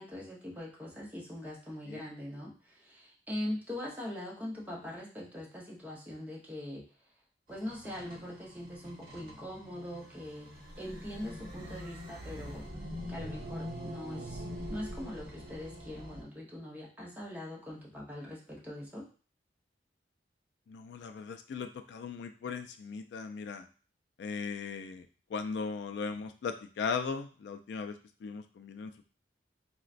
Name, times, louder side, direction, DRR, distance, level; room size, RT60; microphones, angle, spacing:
voice 1, 0.0-6.8 7.5-10.5 10.8-12.7 13.1-14.4 14.7-19.1, left 1 dB, 10° right, -4 dB, 0.8 m, -42 dB
sound 1, 7.5-16.2, equal, 55° right, 0.9 m, -44 dB
voice 2, 20.7-23.7 24.2-27.9 28.2-29.1, left 5 dB, 75° left, 8 dB, 0.3 m, -38 dB
3.8 x 2.1 x 2.4 m, 0.37 s
head